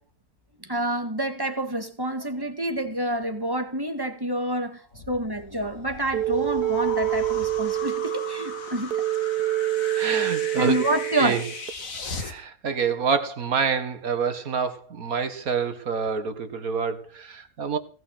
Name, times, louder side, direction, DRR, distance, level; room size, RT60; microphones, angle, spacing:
voice 1, 0.7-4.8 5.1-9.0 10.6-11.4, right 1 dB, 15° right, 2.0 m, -28 dB
sound 1, 4.9-12.3, left 4 dB, 60° left, 2.5 m, -37 dB
sound 2, 6.1-11.7, right 16 dB, 85° right, 1.4 m, -27 dB
voice 2, 10.0-10.9 11.2-11.4 12.1-17.8, right 5 dB, 65° right, 2.2 m, -27 dB
18.0 x 6.3 x 9.9 m
omnidirectional pair, 1.6 m